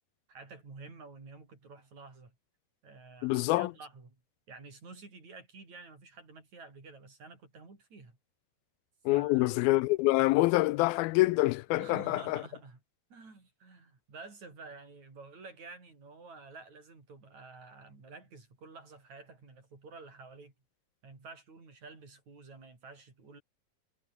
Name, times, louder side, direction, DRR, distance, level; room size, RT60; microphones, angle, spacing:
voice 1, 0.3-2.3 2.8-4.2 4.5-8.2 9.1-9.6 11.8-12.8 13.1-20.5 21.0-23.4, right 4 dB, 45° right, 8.0 m, -50 dB
voice 2, 3.2-3.7 9.1-12.4, left 20 dB, 80° left, 2.3 m, -26 dB
omnidirectional pair, 4.5 m